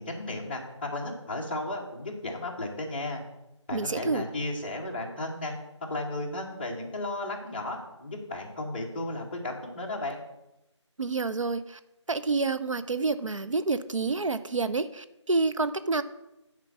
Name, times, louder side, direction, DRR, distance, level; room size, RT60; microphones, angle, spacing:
voice 1, 0.0-3.2 3.7-5.5 5.9-10.2, left 2 dB, 20° left, -2 dB, 1.2 m, -34 dB
voice 2, 3.7-4.3 11.0-11.8 12.1-16.0, right 3 dB, 85° right, 12 dB, 0.7 m, -28 dB
9.6 x 4.5 x 7.2 m, 0.92 s
figure-of-eight pair, 170°, 16 cm